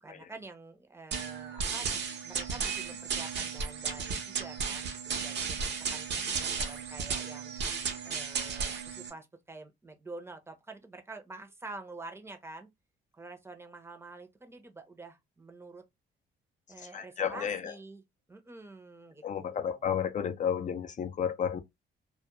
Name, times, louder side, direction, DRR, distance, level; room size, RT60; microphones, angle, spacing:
voice 1, 0.0-1.9 2.2-7.5 8.0-12.7 13.1-15.8 16.7-18.0 18.3-19.8, right 3 dB, 10° right, 0.6 m, -48 dB
sound 1, 1.1-9.1, right 5 dB, 60° right, 0.7 m, -34 dB
voice 2, 16.9-17.7 19.2-21.6, left 8 dB, 40° left, 0.4 m, -32 dB
2.3 x 2.1 x 2.9 m
cardioid pair, 90°, 20 cm